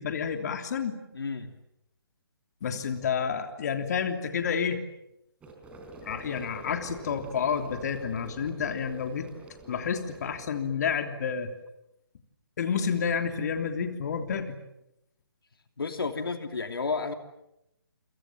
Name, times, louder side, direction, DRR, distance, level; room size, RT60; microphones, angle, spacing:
voice 1, 0.0-1.0 2.6-4.8 6.0-9.3 9.7-11.5 12.6-14.6, left 6 dB, 45° left, 6 dB, 3.2 m, -30 dB
voice 2, 1.1-1.5 15.8-17.1, left 4 dB, 65° left, 6 dB, 2.9 m, -31 dB
sound 1, 5.4-10.5, right 3 dB, 10° right, 4.2 m, -46 dB
29.5 x 26.5 x 7.6 m, 0.84 s
figure-of-eight pair, 145°, 13 cm